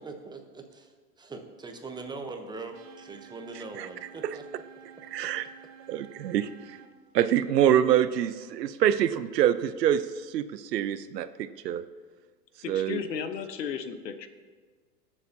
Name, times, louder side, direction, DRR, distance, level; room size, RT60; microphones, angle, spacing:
voice 1, 0.0-4.4, right 3 dB, 10° right, 5 dB, 0.8 m, -41 dB
sound 1, 2.7-6.9, right 8 dB, 45° right, 1.5 m, -51 dB
voice 2, 5.1-5.4 5.9-6.8 7.1-11.8 12.7-13.0, right 10 dB, 80° right, 13 dB, 0.8 m, -25 dB
voice 3, 12.6-14.3, left 7 dB, 85° left, 9 dB, 1.1 m, -34 dB
19.5 x 7.1 x 2.8 m, 1.5 s
hypercardioid pair, 120°, 48 cm